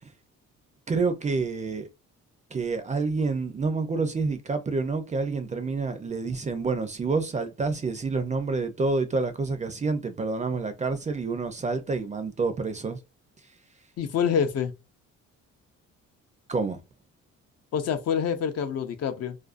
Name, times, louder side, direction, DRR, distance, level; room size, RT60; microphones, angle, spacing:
voice 1, 0.9-1.9 2.5-13.0 16.5-16.8, right 4 dB, 25° right, 0.4 m, -28 dB
voice 2, 14.0-14.7 17.7-19.4, left 7 dB, 55° left, 0.5 m, -26 dB
2.5 x 2.2 x 2.4 m
cardioid pair, 90°, 30 cm